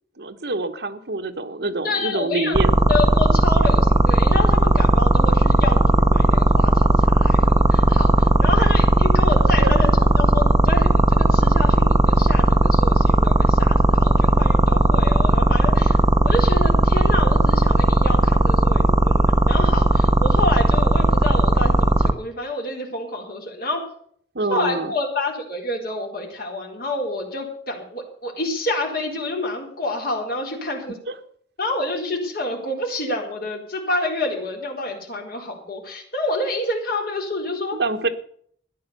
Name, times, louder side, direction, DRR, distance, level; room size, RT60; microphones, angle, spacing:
voice 1, 0.2-2.8 8.6-8.7 9.4-9.7 24.3-24.9 31.1-31.2 37.7-38.1, right 2 dB, 65° right, 6 dB, 1.3 m, -26 dB
voice 2, 1.8-2.6 2.9-9.9 10.2-23.9 24.5-31.0 31.6-37.8, left 2 dB, 55° left, 1 dB, 4.1 m, -28 dB
sound 1, 2.6-22.1, right 1 dB, 20° right, 0.8 m, -16 dB
14.0 x 10.0 x 6.8 m, 0.62 s
head